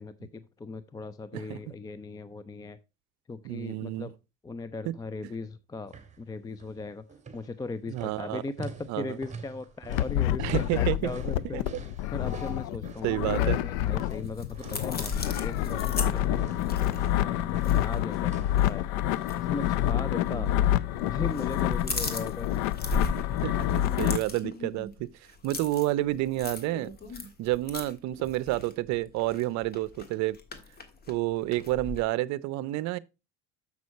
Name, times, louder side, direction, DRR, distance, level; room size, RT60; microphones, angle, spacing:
voice 1, 0.0-2.8 3.3-4.1 4.4-7.0 7.3-11.7 12.1-18.9 19.3-20.5 20.9-22.6, left 3 dB, 10° left, 0.4 m, -38 dB
voice 2, 3.4-4.1 7.9-8.4 8.9-9.2 10.4-11.0 11.5-11.6 13.0-13.6 20.3-20.5 23.4-25.1 25.4-26.9 27.4-30.4 31.1-33.0, right 16 dB, 60° right, 0.6 m, -29 dB
sound 1, 5.9-6.2 6.5-6.8 7.1-16.0 16.3-18.6 19.1-19.9 20.2-20.3, right 5 dB, 25° right, 1.8 m, -47 dB
sound 2, 9.9-24.2, left 12 dB, 85° left, 0.6 m, -28 dB
sound 3, 13.9-18.2 18.5-18.7 19.2-19.4 20.2-20.9 21.1-32.0, left 4 dB, 30° left, 1.6 m, -37 dB
7.2 x 6.2 x 4.1 m
supercardioid pair, 105°, 31 cm